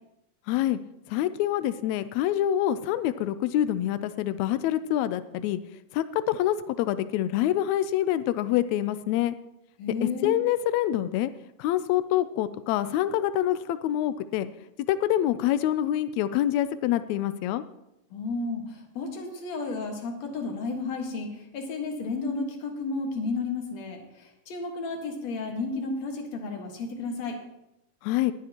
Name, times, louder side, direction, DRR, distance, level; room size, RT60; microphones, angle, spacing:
voice 1, 0.5-0.8 1.1-5.6 5.9-9.4 10.0-11.3 11.6-14.5 14.9-17.6 28.0-28.3, left 12 dB, 90° left, 12 dB, 1.6 m, -26 dB
voice 2, 9.8-10.3 18.1-27.4, left 3 dB, 60° left, 2 dB, 2.6 m, -32 dB
19.0 x 9.9 x 2.9 m, 0.86 s
omnidirectional pair, 3.8 m